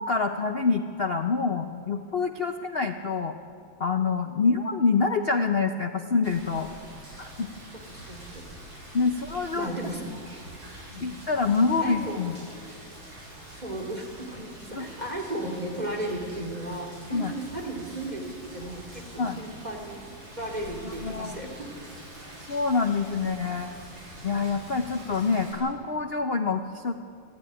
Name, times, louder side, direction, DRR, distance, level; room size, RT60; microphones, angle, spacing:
voice 1, 0.0-3.4 3.8-6.7 7.2-7.5 8.9-9.7 11.0-12.4 14.7-14.9 17.1-17.3 19.2-19.4 20.8-21.3 22.5-23.7 24.2-26.9, left 4 dB, 85° left, 6 dB, 0.5 m, -26 dB
Rain, 6.2-25.5, right 1 dB, 85° right, 8.8 m, -45 dB
voice 2, 7.9-8.4 9.5-10.0 10.9-11.0 11.8-12.3 13.5-20.1 20.4-21.9, right 1 dB, 20° right, 2 dB, 3.1 m, -35 dB
28.5 x 12.5 x 9.9 m, 2.4 s
omnidirectional pair, 2.3 m